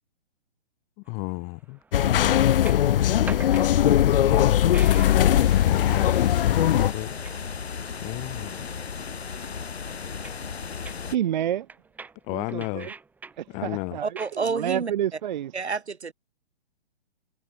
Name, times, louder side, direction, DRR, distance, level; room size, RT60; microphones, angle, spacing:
voice 1, 1.1-1.8 2.1-2.6 4.0-7.2 7.8-8.7 12.3-12.9 13.5-14.0, left 33 dB, 20° left, 0.9 m, -33 dB
sound 1, 1.1-15.2, right 4 dB, 5° right, 1.1 m, -47 dB
sound 2, 1.9-6.9, left 11 dB, 60° left, 0.5 m, -20 dB
sound 3, 4.9-11.2, left 6 dB, 75° left, 3.1 m, -35 dB
voice 2, 11.1-11.7 12.3-12.9 13.4-15.5, right 11 dB, 45° right, 0.6 m, -29 dB
voice 3, 14.0-14.9 15.5-16.1, right 5 dB, 90° right, 1.9 m, -29 dB
hypercardioid pair, 135°, 32 cm